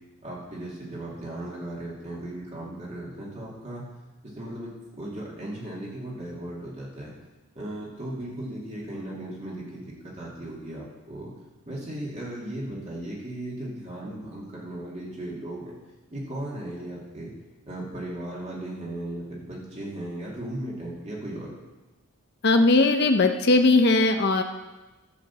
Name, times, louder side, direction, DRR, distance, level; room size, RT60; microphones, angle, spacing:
voice 1, 0.2-3.8 4.3-4.7 5.0-7.1 7.5-11.3 11.7-15.8 16.1-17.3 17.6-21.5, right 1 dB, 30° right, -5 dB, 2.5 m, -36 dB
voice 2, 22.4-24.4, left 2 dB, 50° left, 6 dB, 0.7 m, -19 dB
12.5 x 5.1 x 7.3 m, 1.1 s
head